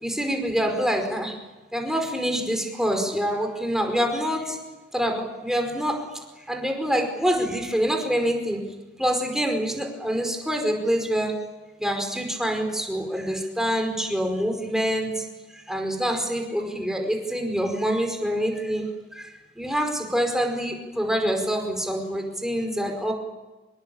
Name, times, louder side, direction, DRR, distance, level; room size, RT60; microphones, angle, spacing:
voice 1, 0.0-1.3 1.7-4.6 4.9-5.9 6.5-8.6 9.0-11.3 11.8-15.1 15.7-18.8 19.1-19.2 19.6-23.1, equal, 5° right, 3 dB, 5.1 m, -26 dB
26.0 x 22.0 x 8.7 m, 1.2 s
head